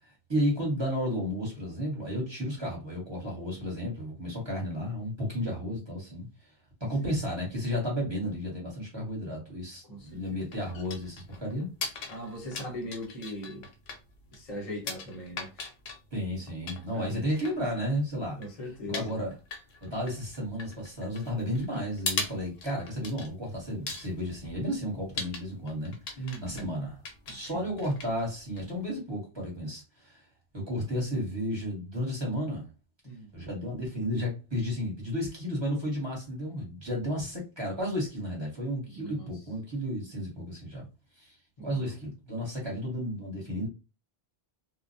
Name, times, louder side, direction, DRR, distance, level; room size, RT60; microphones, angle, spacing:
voice 1, 0.3-6.3 6.8-11.7 16.1-18.4 18.8-19.3 19.8-27.0 27.3-30.2 30.5-32.7 33.3-40.8 41.2-41.4 41.6-43.7, equal, 25° right, 1.1 m, -33 dB
voice 2, 9.8-10.4 12.1-13.7 14.3-15.7 16.9-17.3 18.4-19.2 26.2-26.7 27.3-27.6 33.0-33.3 38.9-39.3 41.6-41.9, equal, 40° left, 0.8 m, -40 dB
sound 1, 10.0-29.0, left 4 dB, 80° left, 0.8 m, -41 dB
2.2 x 2.1 x 2.6 m
omnidirectional pair, 1.0 m